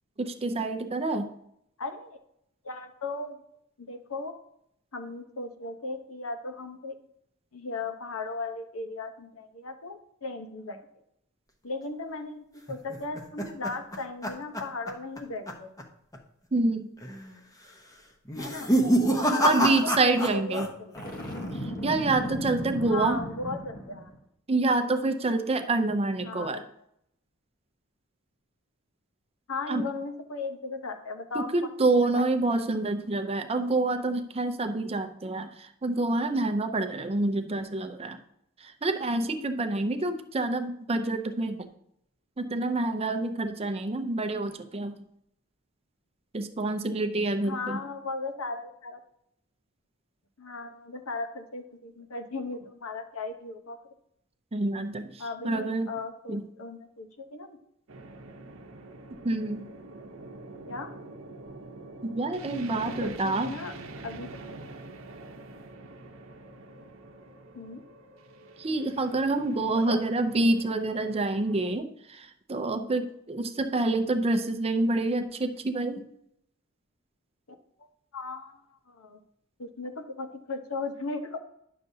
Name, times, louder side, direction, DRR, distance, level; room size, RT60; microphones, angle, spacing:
voice 1, 0.2-1.3 16.5-16.9 19.3-20.7 21.8-23.2 24.5-26.6 29.7-29.9 31.3-38.2 38.6-41.7 42.4-45.0 46.3-47.8 54.5-55.9 56.3-56.4 59.2-59.7 62.0-63.5 68.6-76.0, right 2 dB, 30° right, 7 dB, 0.6 m, -27 dB
voice 2, 1.8-2.2 2.6-3.4 3.8-4.3 4.9-6.9 7.5-10.8 11.6-15.7 18.4-18.7 19.1-21.1 22.9-24.1 26.2-26.7 29.5-31.7 32.0-32.2 47.4-49.0 50.4-53.8 55.2-57.6 60.7-60.9 62.7-63.7 64.0-64.3 67.5-67.8 69.7-70.0 77.8-77.9 78.1-79.2 79.6-81.4, left 3 dB, 75° left, 6 dB, 0.9 m, -37 dB
sound 1, 12.7-15.2 15.5-15.8 16.1-16.2 17.0-17.4 18.3-20.7 20.9-21.5, equal, 15° left, 0.8 m, -27 dB
Boom, 21.0-24.2, equal, 40° left, 1.2 m, -36 dB
sound 2, 57.9-71.7, right 2 dB, 65° right, 0.8 m, -45 dB
10.5 x 6.6 x 2.7 m, 0.75 s
head